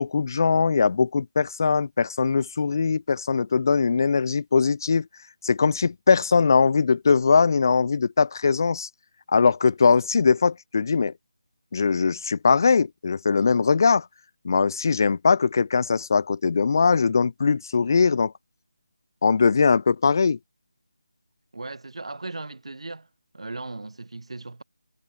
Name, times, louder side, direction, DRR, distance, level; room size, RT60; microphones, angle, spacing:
voice 1, 0.0-5.1 5.4-8.9 9.3-11.1 11.7-14.1 14.4-18.3 19.2-20.4, left 5 dB, 35° left, 0.6 m, -21 dB
voice 2, 21.5-23.1 23.3-24.6, right 3 dB, 70° right, 5.0 m, -37 dB
figure-of-eight pair, 170°, 3 cm